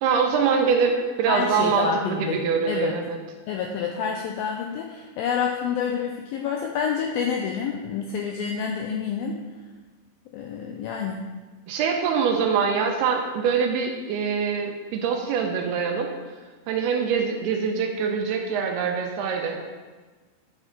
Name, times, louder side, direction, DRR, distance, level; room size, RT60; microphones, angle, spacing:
voice 1, 0.0-3.2 11.7-16.1 16.7-19.7, right 6 dB, 80° right, 2 dB, 2.7 m, -24 dB
voice 2, 1.3-2.4 2.7-3.0 3.5-9.4 10.3-11.2, left 7 dB, 85° left, 2 dB, 2.1 m, -28 dB
9.7 x 6.1 x 5.2 m, 1.3 s
omnidirectional pair, 4.9 m